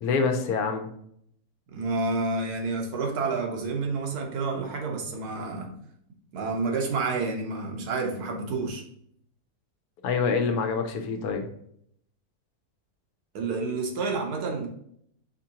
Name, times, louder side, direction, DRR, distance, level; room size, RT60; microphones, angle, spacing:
voice 1, 0.0-0.9 10.0-11.4, left 5 dB, 75° left, 6 dB, 1.1 m, -26 dB
voice 2, 1.7-5.7 6.3-8.8 13.3-14.7, right 3 dB, 80° right, 1 dB, 1.4 m, -29 dB
5.1 x 3.7 x 2.8 m, 0.68 s
omnidirectional pair, 1.6 m